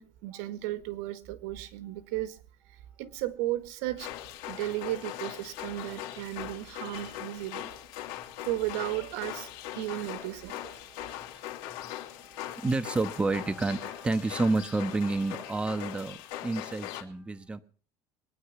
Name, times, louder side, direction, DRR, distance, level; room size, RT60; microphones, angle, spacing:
voice 1, 0.0-2.4 2.7-4.1 4.5-7.8 8.4-11.1, right 15 dB, 90° right, 1.6 m, -35 dB
sound 1, 4.0-17.0, left 13 dB, 85° left, 2.7 m, -41 dB
voice 2, 11.0-17.6, right 3 dB, 15° right, 1.2 m, -31 dB
22.0 x 9.9 x 6.0 m
cardioid pair, 130°, 9 cm